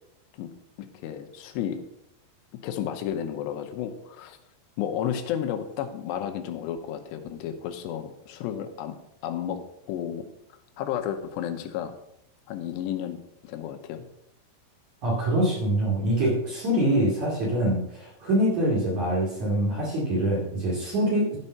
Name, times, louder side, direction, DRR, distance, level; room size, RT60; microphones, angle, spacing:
voice 1, 0.9-1.8 2.6-4.4 4.8-8.9 9.2-9.6 9.9-10.3 10.8-11.9 12.5-14.1, left 9 dB, 90° left, 7 dB, 3.0 m, -32 dB
voice 2, 15.0-21.4, right 1 dB, 50° right, -5 dB, 3.3 m, -24 dB
12.0 x 5.5 x 5.5 m, 0.79 s
omnidirectional pair, 4.8 m